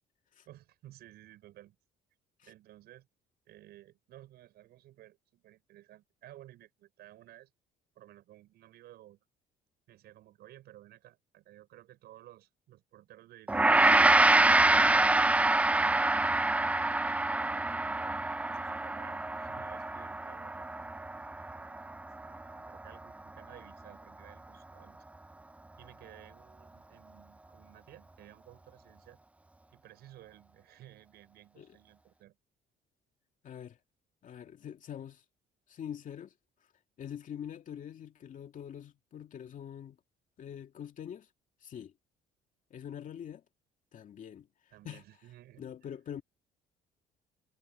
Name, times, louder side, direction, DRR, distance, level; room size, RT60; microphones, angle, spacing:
voice 1, 0.5-1.8 2.4-3.1 3.5-7.5 7.9-9.2 9.9-13.9 14.3-15.4 17.0-20.7 21.4-25.0 25.8-29.2 29.7-32.4 44.7-45.7, right 14 dB, 75° right, 6.2 m, -55 dB
Gong, 13.5-22.9, right 2 dB, 10° right, 0.4 m, -26 dB
voice 2, 33.4-33.8 34.2-35.2 35.7-36.3 37.0-40.0 40.4-41.3 41.6-41.9 42.7-43.4 43.9-44.5 44.8-45.0 45.6-46.2, left 9 dB, 50° left, 2.3 m, -44 dB
cardioid pair, 110°, 17 cm